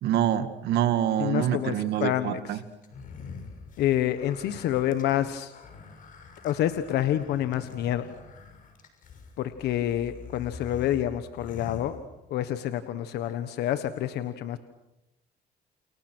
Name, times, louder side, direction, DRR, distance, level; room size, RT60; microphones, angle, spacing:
voice 1, 0.0-2.6, right 11 dB, 75° right, 10 dB, 2.2 m, -26 dB
voice 2, 1.2-2.6 3.8-5.5 6.4-8.1 9.4-12.0 12.3-14.6, left 12 dB, 75° left, 10 dB, 1.4 m, -28 dB
sound 1, 2.8-12.5, left 4 dB, 50° left, 6.5 m, -45 dB
29.5 x 29.0 x 6.4 m, 0.93 s
cardioid pair, 110°, 17 cm